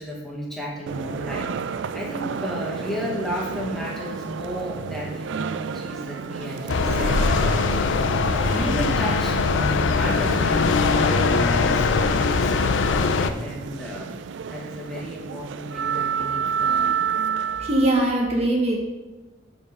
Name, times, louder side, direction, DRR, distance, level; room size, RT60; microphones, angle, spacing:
voice 1, 0.0-1.5 1.9-7.3 7.7-9.4 9.9-14.1 14.5-16.9, equal, ahead, -4 dB, 1.1 m, -33 dB
sound 1, 0.9-18.0, right 7 dB, 70° right, 0.3 m, -30 dB
sound 2, 6.7-13.3, left 4 dB, 75° left, 0.5 m, -21 dB
voice 2, 17.6-18.8, right 1 dB, 35° right, 0 dB, 1.2 m, -21 dB
7.8 x 4.7 x 5.3 m, 1.2 s
head